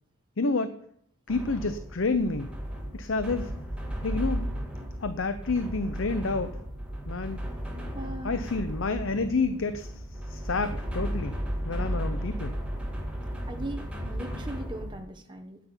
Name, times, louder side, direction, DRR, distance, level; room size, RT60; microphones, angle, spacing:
voice 1, 0.4-0.7 1.3-2.5 2.9-3.5 4.0-4.5 5.0-6.6 7.1-7.4 8.2-11.4 11.6-12.5, left 3 dB, 70° left, 10 dB, 0.7 m, -29 dB
sound 1, 1.3-15.0, equal, 5° right, 2.2 m, -34 dB
voice 2, 7.9-8.4 13.5-15.6, right 1 dB, 20° right, 4 dB, 1.4 m, -39 dB
9.8 x 9.4 x 7.2 m, 0.66 s
head